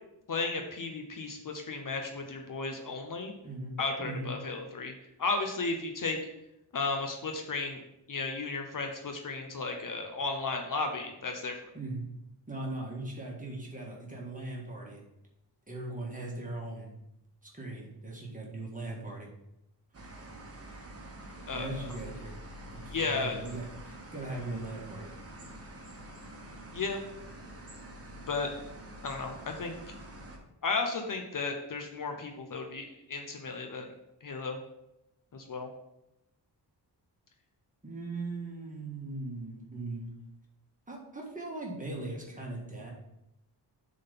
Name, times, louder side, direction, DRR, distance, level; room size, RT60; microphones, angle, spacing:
voice 1, 0.3-3.3 3.8-4.9 5.2-6.2 6.7-7.8 8.1-11.5 21.5-21.9 22.9-23.4 26.7-27.0 28.3-28.5 29.0-29.7 30.6-33.9 34.2-34.6 35.3-35.7, left 3 dB, 50° left, 3 dB, 0.9 m, -34 dB
voice 2, 3.4-4.3 11.7-12.0 12.5-15.0 15.7-16.9 17.4-19.3 21.5-22.3 22.8-25.1 37.8-40.1 40.9-42.9, right 2 dB, 20° right, -2 dB, 1.6 m, -39 dB
sound 1, 19.9-30.4, right 1 dB, 35° right, 1.3 m, -47 dB
7.2 x 3.9 x 5.6 m, 0.86 s
wide cardioid pair, 160°, 42 cm